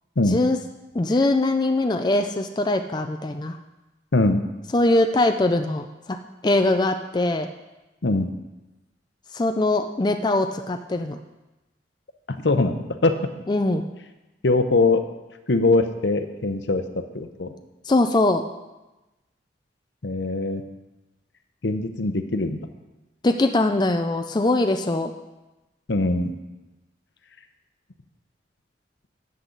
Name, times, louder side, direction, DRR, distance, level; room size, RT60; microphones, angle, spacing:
voice 1, 0.3-0.6 0.9-3.6 4.7-6.2 6.4-7.5 9.3-11.2 13.5-13.9 17.9-18.4 23.2-25.1, left 2 dB, 25° left, 6 dB, 0.4 m, -22 dB
voice 2, 12.3-13.1 14.4-15.0 15.5-17.5 20.0-20.6 21.6-22.6 25.9-26.3, left 2 dB, 70° left, 8 dB, 0.8 m, -22 dB
12.0 x 8.2 x 3.9 m, 1.1 s
head